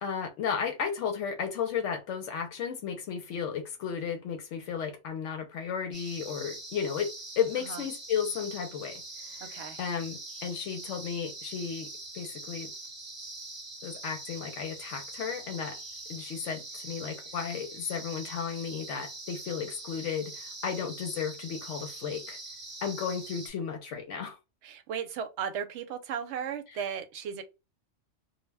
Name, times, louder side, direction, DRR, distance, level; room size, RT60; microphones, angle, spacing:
voice 1, 0.0-7.1 7.4-9.5 9.8-11.9 12.1-12.7 13.8-15.8 16.1-22.4 22.8-24.4, left 7 dB, 80° left, 0.9 m, -34 dB
sound 1, 5.9-23.5, right 2 dB, 30° right, 0.7 m, -43 dB
voice 2, 9.4-9.8 24.6-27.4, right 7 dB, 75° right, 0.8 m, -36 dB
2.2 x 2.1 x 3.2 m
omnidirectional pair, 1.2 m